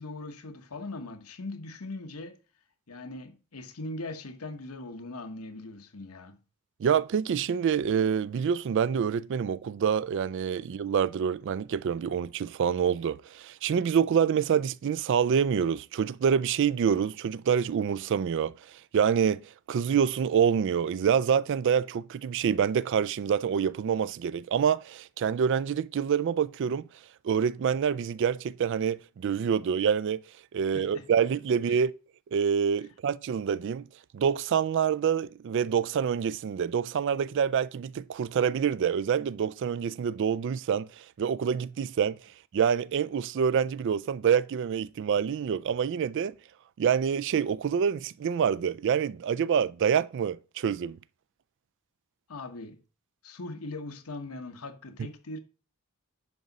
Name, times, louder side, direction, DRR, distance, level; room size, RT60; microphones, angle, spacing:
voice 1, 0.0-2.4 2.9-6.4 30.7-31.1 31.7-31.8 52.3-52.8 53.2-55.4, left 2 dB, 85° left, 1.1 m, -40 dB
voice 2, 6.8-18.5 18.9-26.9 27.2-30.2 30.5-31.9 32.3-33.9 34.1-42.2 42.5-46.3 46.8-51.0, right 7 dB, 55° right, 0.3 m, -26 dB
10.5 x 4.9 x 4.0 m
head